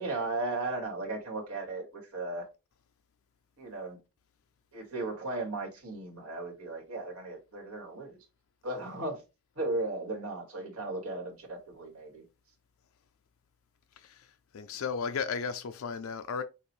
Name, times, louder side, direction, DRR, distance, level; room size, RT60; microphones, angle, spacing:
voice 1, 0.0-2.5 3.6-4.0 4.7-8.2 8.6-9.2 9.6-12.2, right 2 dB, 85° right, 2.2 m, -36 dB
voice 2, 14.0-14.3 14.5-16.4, left 5 dB, 70° left, 0.4 m, -34 dB
6.5 x 2.6 x 3.0 m
head